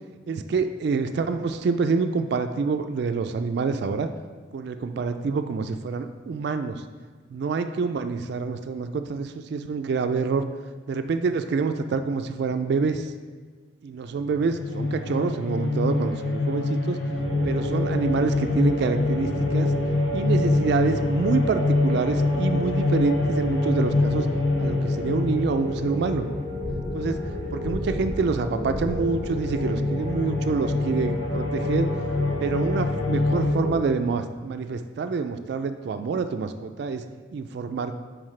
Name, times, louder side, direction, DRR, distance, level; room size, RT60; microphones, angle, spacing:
voice 1, 0.3-4.1 4.5-6.8 7.3-10.4 10.9-13.1 13.8-17.0 17.4-19.7 20.1-24.3 24.6-26.3 26.9-27.2 27.5-31.9 32.4-37.0 37.3-37.9, right 4 dB, 60° right, 8 dB, 0.3 m, -26 dB
sound 1, 14.1-33.5, left 2 dB, 85° left, 0.9 m, -26 dB
sound 2, 17.2-33.8, left 1 dB, 10° right, 1.1 m, -33 dB
7.3 x 4.8 x 3.2 m, 1.5 s
head